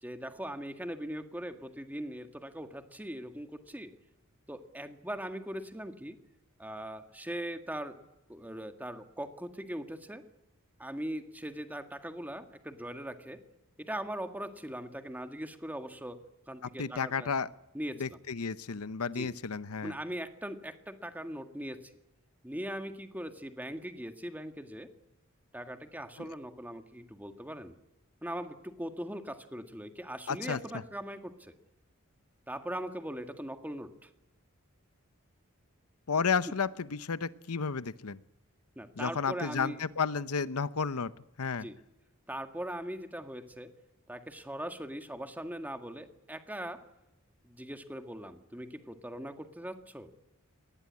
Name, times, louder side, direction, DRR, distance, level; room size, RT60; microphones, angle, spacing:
voice 1, 0.0-3.9 4.5-6.2 6.6-8.0 8.3-10.2 10.8-13.4 13.8-16.2 16.5-17.3 17.7-18.2 19.1-19.3 19.8-21.9 22.4-24.9 25.5-27.7 28.2-31.5 32.5-34.1 36.4-36.5 38.8-39.8 41.6-41.8 42.3-43.7 44.1-46.9 47.4-50.1, right 1 dB, 10° right, 7 dB, 1.8 m, -40 dB
voice 2, 16.8-17.5 18.0-19.9 30.3-30.6 36.1-38.2 39.0-41.1 41.4-41.7, left 5 dB, 90° left, 15 dB, 0.8 m, -32 dB
23.0 x 19.5 x 9.7 m, 0.90 s
head